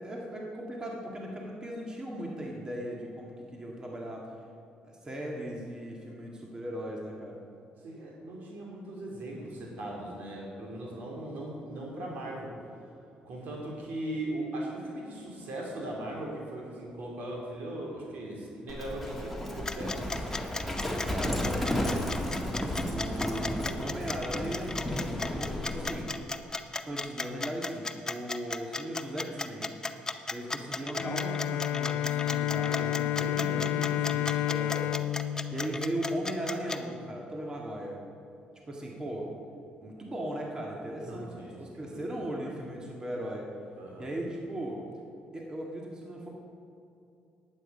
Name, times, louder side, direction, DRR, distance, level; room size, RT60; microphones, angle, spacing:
voice 1, 0.0-4.3 4.8-7.4 21.1-22.1 22.8-24.8 25.4-26.1 26.9-29.8 30.3-35.0 35.5-38.0 38.7-39.3 39.8-43.5 44.0-44.8 45.3-46.3, right 1 dB, 25° right, -1 dB, 1.9 m, -37 dB
voice 2, 7.8-12.6 13.2-20.4 21.1-21.6 23.1-23.3 33.2-34.4 35.5-35.6 41.0-42.2 43.8-44.1, right 1 dB, 70° right, -1 dB, 2.9 m, -39 dB
Livestock farm animals working animals, 18.7-26.0, left 1 dB, 5° left, 1.9 m, -33 dB
sound 1, 19.7-36.8, left 3 dB, 20° left, 0.6 m, -35 dB
Bowed string instrument, 31.0-36.6, left 13 dB, 75° left, 0.3 m, -31 dB
11.0 x 8.7 x 5.5 m, 2.7 s
cardioid pair, 80°, 3 cm